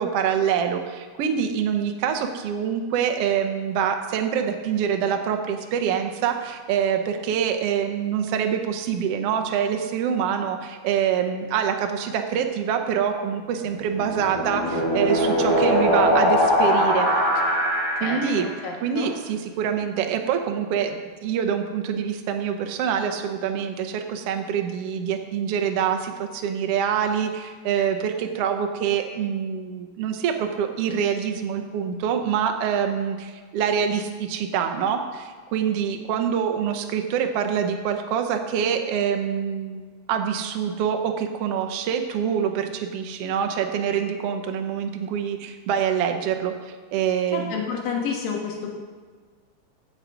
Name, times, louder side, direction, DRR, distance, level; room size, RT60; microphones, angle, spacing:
voice 1, 0.0-17.1 18.0-18.5 18.8-39.8 40.1-47.5, right 8 dB, 80° right, 5 dB, 1.3 m, -25 dB
sound 1, 13.7-18.5, equal, 5° left, 3.3 m, -21 dB
voice 2, 18.0-19.1 47.3-48.7, left 6 dB, 85° left, 0 dB, 3.1 m, -30 dB
15.5 x 6.5 x 5.1 m, 1.5 s
omnidirectional pair, 3.9 m